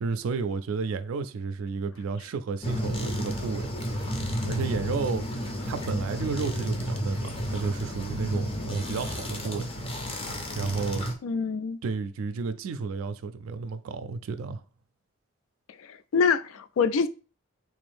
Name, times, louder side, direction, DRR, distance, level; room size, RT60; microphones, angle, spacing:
voice 1, 0.0-3.7 4.5-5.2 5.7-9.7 10.5-11.1 11.8-14.6, right 4 dB, 90° right, 0.4 m, -32 dB
sound 1, 2.6-11.1, equal, 30° left, 0.5 m, -32 dB
voice 2, 11.2-11.8 15.8-17.1, left 5 dB, 85° left, 0.3 m, -25 dB
3.5 x 2.6 x 3.4 m
head